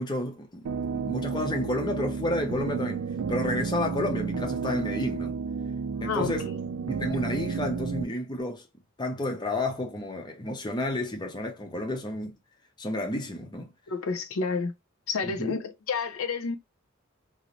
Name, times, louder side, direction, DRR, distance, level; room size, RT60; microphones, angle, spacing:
voice 1, 0.0-5.4 6.0-6.5 6.8-8.6 9.0-12.3 12.8-13.7 15.2-15.6, left 1 dB, 20° left, 0.6 m, -31 dB
sound 1, 0.7-8.0, right 5 dB, 70° right, 0.4 m, -31 dB
voice 2, 5.9-6.5 13.9-14.7 15.1-16.6, left 4 dB, 70° left, 0.5 m, -30 dB
2.5 x 2.0 x 2.9 m
head